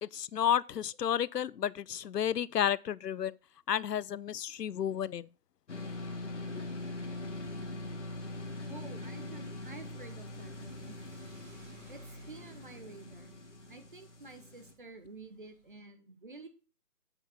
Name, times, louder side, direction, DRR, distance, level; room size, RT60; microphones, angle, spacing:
voice 1, 0.0-3.4 3.7-5.3 6.5-6.7, left 9 dB, 85° left, 0.6 m, -32 dB
sound 1, 5.7-14.7, left 2 dB, 45° left, 1.7 m, -42 dB
voice 2, 8.6-11.0 11.9-13.4 13.7-16.5, right 3 dB, 30° right, 0.9 m, -50 dB
Car / Accelerating revving vroom, 9.1-15.8, right 1 dB, 55° right, 5.0 m, -59 dB
7.9 x 6.6 x 4.3 m
figure-of-eight pair, 160°, 47 cm